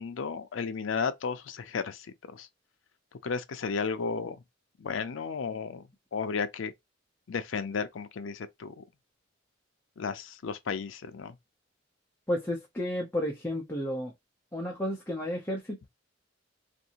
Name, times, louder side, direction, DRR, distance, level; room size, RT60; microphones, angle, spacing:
voice 1, 0.0-2.5 3.2-4.4 4.8-5.8 6.1-6.7 7.3-8.8 10.0-11.3, left 5 dB, 80° left, 0.4 m, -33 dB
voice 2, 12.3-14.1 14.5-15.9, left 1 dB, 10° left, 0.6 m, -32 dB
2.6 x 2.6 x 2.8 m
head